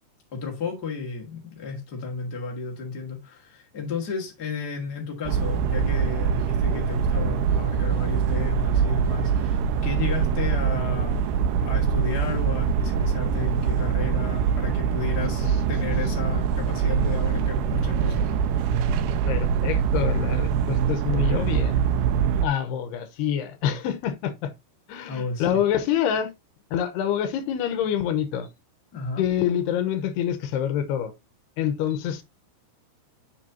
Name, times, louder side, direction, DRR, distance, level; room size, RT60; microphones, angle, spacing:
voice 1, 0.3-11.3 11.6-18.3 25.1-25.6 28.9-29.2, left 4 dB, 40° left, 1.4 m, -33 dB
sound 1, 5.3-22.5, right 7 dB, 80° right, 2.4 m, -24 dB
voice 2, 19.3-21.8 22.4-24.5 24.9-26.3 26.7-28.5 29.2-31.1 31.6-32.2, left 9 dB, 80° left, 3.0 m, -26 dB
7.7 x 7.3 x 2.8 m
omnidirectional pair, 4.9 m